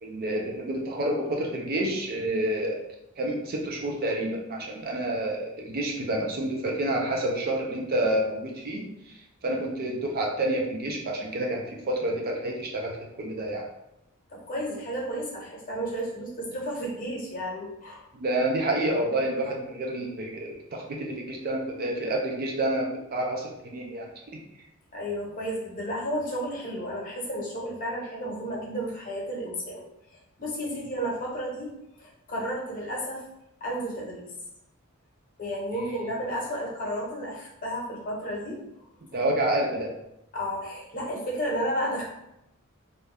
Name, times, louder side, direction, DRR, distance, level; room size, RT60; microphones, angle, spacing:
voice 1, 0.0-2.8 3.2-13.7 18.1-24.1 35.8-36.0 39.1-39.9, right 1 dB, 45° right, 0 dB, 0.5 m, -29 dB
voice 2, 14.3-18.1 24.9-29.8 30.4-31.7 32.0-33.2 33.6-34.3 35.4-38.6 40.3-42.0, equal, 40° left, -3 dB, 0.9 m, -32 dB
2.6 x 2.2 x 3.3 m, 0.85 s
head